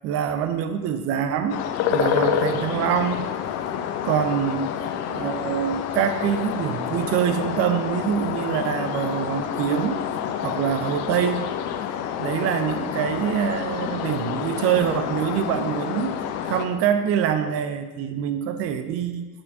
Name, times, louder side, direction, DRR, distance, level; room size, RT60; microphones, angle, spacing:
voice 1, 0.0-1.6 1.9-3.3 4.0-4.7 5.1-10.0 10.4-11.5 12.2-16.1 16.4-19.3, right 8 dB, 30° right, 10 dB, 0.7 m, -25 dB
sound 1, 1.5-16.7, left 8 dB, 35° left, 0.8 m, -28 dB
18.0 x 6.3 x 2.8 m, 1.2 s
figure-of-eight pair, 80°, 46 cm